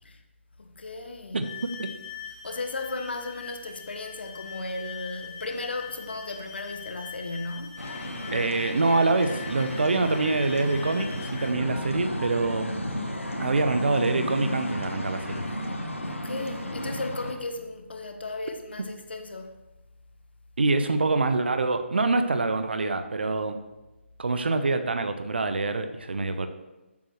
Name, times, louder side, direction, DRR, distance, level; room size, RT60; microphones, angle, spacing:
voice 1, 0.6-1.5 2.3-7.9 16.0-19.5, left 2 dB, 55° left, 0.9 m, -35 dB
voice 2, 1.3-1.9 8.3-12.7 13.4-15.4 18.8-18.9 20.6-23.6 24.2-26.5, right 3 dB, 55° right, 0.8 m, -25 dB
sound 1, 1.4-11.6, left 8 dB, 30° left, 1.1 m, -42 dB
sound 2, 7.8-17.3, left 1 dB, 80° left, 1.4 m, -33 dB
13.5 x 7.2 x 3.2 m
figure-of-eight pair, 150°, 7 cm